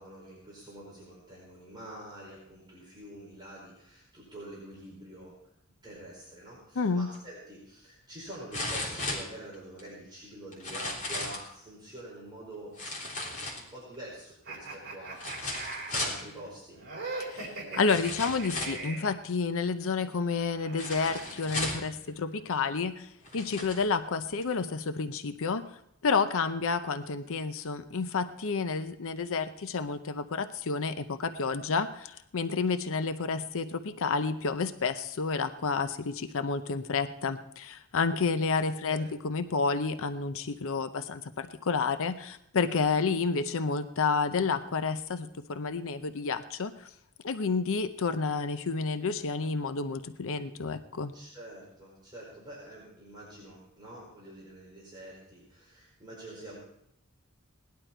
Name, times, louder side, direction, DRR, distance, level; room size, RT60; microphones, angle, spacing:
voice 1, 0.0-5.4 5.8-12.8 13.6-15.6 15.9-16.8 38.6-39.0 51.1-56.6, right 1 dB, 20° right, -5 dB, 4.7 m, -46 dB
voice 2, 6.8-7.1 17.3-25.6 26.0-46.9 47.2-51.1, left 4 dB, 65° left, 10 dB, 0.7 m, -30 dB
sound 1, 7.1-7.2 8.5-9.8 10.5-11.5 12.8-13.9 15.2-16.2 17.2-17.3 17.9-18.9 20.8-21.9 22.7-22.8 23.2-23.8 24.4-24.5, left 2 dB, 35° left, 3.6 m, -35 dB
sound 2, 14.5-19.1 20.3-22.1, right 3 dB, 50° right, 4.0 m, -41 dB
18.5 x 11.5 x 4.4 m, 0.75 s
head